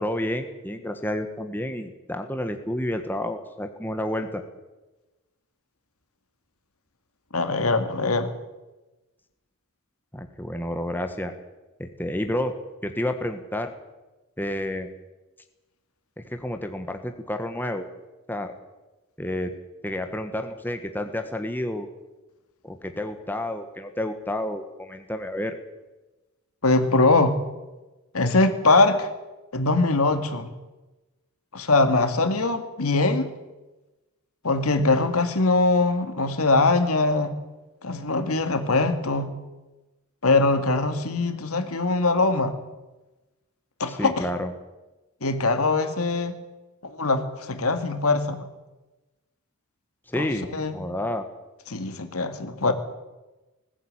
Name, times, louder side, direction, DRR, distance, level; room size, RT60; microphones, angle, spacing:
voice 1, 0.0-4.4 10.1-11.3 11.8-12.5 12.8-13.7 14.4-14.9 16.2-17.9 18.3-18.5 19.2-19.5 19.8-21.9 22.6-25.5 43.9-44.5 50.1-51.3, left 1 dB, 10° left, 6 dB, 1.4 m, -30 dB
voice 2, 7.3-8.3 26.6-27.4 28.1-29.1 29.5-30.5 31.5-33.3 34.4-37.3 37.8-39.3 40.2-42.5 43.8-44.2 45.2-46.4 46.8-48.4 50.2-50.8 51.7-52.7, left 3 dB, 80° left, 8 dB, 2.1 m, -22 dB
20.0 x 15.0 x 8.9 m, 1.1 s
head